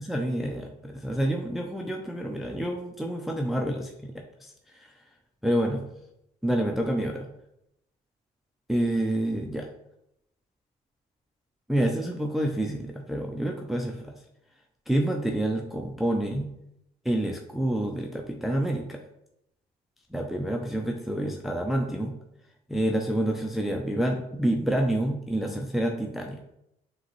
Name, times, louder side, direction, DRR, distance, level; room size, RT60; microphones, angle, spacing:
voice 1, 0.0-4.1 4.4-5.0 5.4-5.8 6.4-7.3 8.7-9.7 11.7-14.1 14.9-16.5 17.0-19.0 20.1-22.1 22.7-26.4, right 1 dB, ahead, 2 dB, 0.4 m, -28 dB
5.0 x 3.0 x 3.0 m, 0.80 s
cardioid pair, 110°, 17 cm